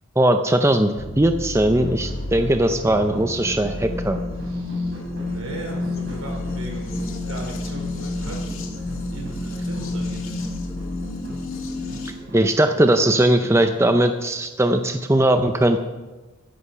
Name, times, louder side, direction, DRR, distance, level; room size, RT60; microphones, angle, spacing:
voice 1, 0.2-4.2 12.3-15.8, right 1 dB, 10° right, 7 dB, 0.5 m, -19 dB
sound 1, 1.0-12.1, left 2 dB, 70° left, 2.2 m, -30 dB
sound 2, 1.7-13.9, equal, 60° right, 4.8 m, -40 dB
voice 2, 4.4-8.4 9.1-10.2, right 1 dB, 80° right, 0 dB, 4.5 m, -37 dB
14.0 x 11.5 x 5.6 m, 1.2 s
head